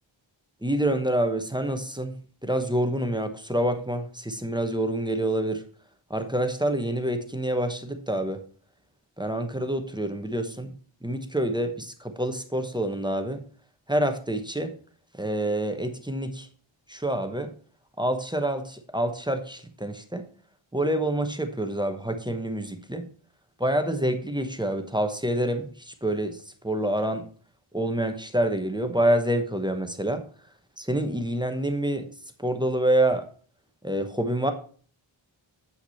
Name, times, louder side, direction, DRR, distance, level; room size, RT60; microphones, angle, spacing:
voice 1, 0.6-2.1 2.4-5.6 6.1-8.4 9.2-10.7 11.0-13.4 13.9-14.7 15.2-16.5 16.9-17.5 18.0-20.3 20.7-23.1 23.6-27.3 27.7-30.2 30.8-32.1 32.4-33.3 33.8-34.5, right 1 dB, 10° right, 7 dB, 1.0 m, -27 dB
8.2 x 5.8 x 4.3 m, 0.44 s
wide cardioid pair, 55°, 48 cm